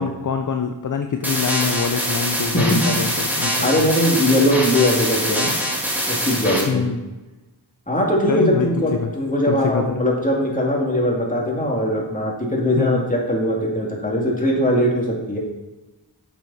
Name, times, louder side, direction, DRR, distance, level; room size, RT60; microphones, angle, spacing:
voice 1, 0.0-3.7 6.7-7.0 8.3-9.1 9.5-10.0 12.8-13.1, left 6 dB, 45° left, 7 dB, 0.6 m, -24 dB
sound 1, 1.2-6.6, equal, 5° right, 2.2 m, -23 dB
voice 2, 2.5-3.0 3.6-5.5 6.1-6.9 7.9-15.4, equal, 20° left, -2 dB, 2.4 m, -20 dB
8.6 x 6.5 x 4.2 m, 1.1 s
wide cardioid pair, 65°, 43 cm